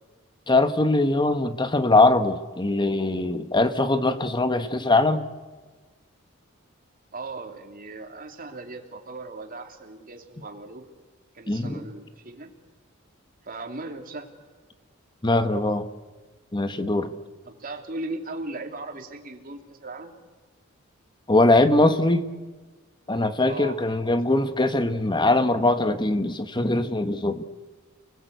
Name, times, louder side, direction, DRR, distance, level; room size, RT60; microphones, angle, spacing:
voice 1, 0.5-5.3 11.5-11.8 15.2-15.9 16.5-17.1 21.3-22.3 23.1-27.4, left 2 dB, 20° left, 10 dB, 1.3 m, -21 dB
voice 2, 7.1-10.8 11.3-12.5 13.4-14.3 17.4-20.1 23.5-23.8 24.0-24.2, right 2 dB, 45° right, 3 dB, 3.0 m, -38 dB
30.0 x 20.5 x 8.1 m, 1.3 s
head